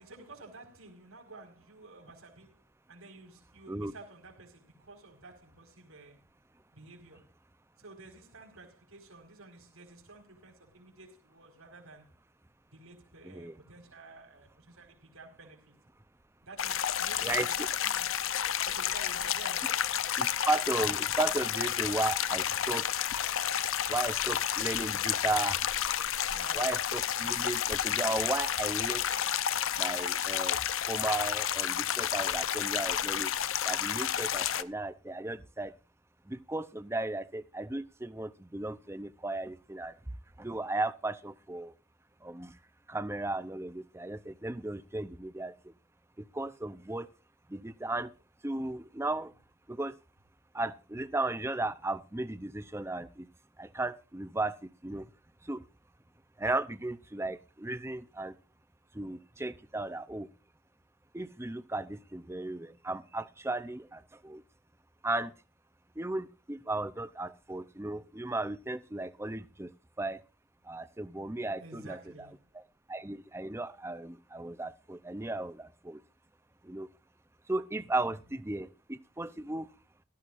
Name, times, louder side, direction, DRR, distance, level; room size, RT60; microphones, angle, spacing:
voice 1, 0.0-2.6 2.9-6.2 6.7-7.2 7.8-12.1 12.7-15.8 16.4-18.1 18.6-19.8 26.3-26.7 71.6-72.4, right 3 dB, 85° right, 4.7 m, -51 dB
voice 2, 13.2-13.6 17.2-17.5 20.2-22.9 23.9-25.6 26.5-29.0 29.8-30.6 30.9-33.3 33.6-35.7 36.3-39.9 40.4-41.7 42.2-42.5 42.9-45.5 46.3-47.1 47.5-48.1 48.4-49.3 49.7-49.9 50.5-53.3 53.6-54.6 54.8-55.0 55.5-55.6 56.4-58.3 58.9-60.3 61.1-64.4 65.0-65.3 66.0-69.7 70.0-70.2 70.7-72.0 72.5-72.6 72.9-76.0 76.6-76.9 77.5-79.7, right 2 dB, 10° right, 0.6 m, -35 dB
sound 1, 16.6-34.6, left 10 dB, 65° left, 0.6 m, -31 dB
17.0 x 13.5 x 2.5 m
head